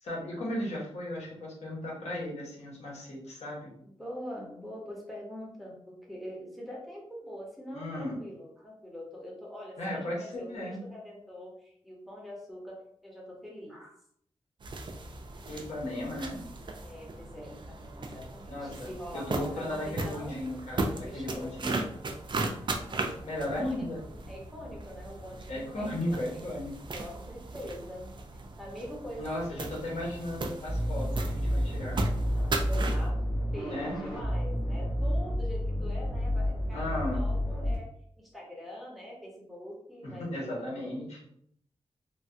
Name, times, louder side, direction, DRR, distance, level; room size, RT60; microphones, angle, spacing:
voice 1, 0.0-3.7 7.7-8.2 9.8-10.8 15.5-16.4 18.5-21.8 23.2-24.0 25.5-26.7 29.2-32.1 33.6-34.0 36.7-37.3 40.0-41.2, left 1 dB, 80° left, -4 dB, 1.1 m, -36 dB
voice 2, 3.8-13.9 16.8-20.5 21.0-21.6 23.6-26.7 26.9-28.1 28.6-29.7 32.3-33.2 33.5-37.9 38.2-41.0, equal, ahead, -4 dB, 0.9 m, -44 dB
sound 1, 14.6-33.1, right 2 dB, 45° right, 0.4 m, -37 dB
sound 2, 30.6-37.7, equal, 50° left, 1.5 m, -30 dB
3.2 x 2.2 x 2.7 m, 0.68 s
wide cardioid pair, 95°, 11 cm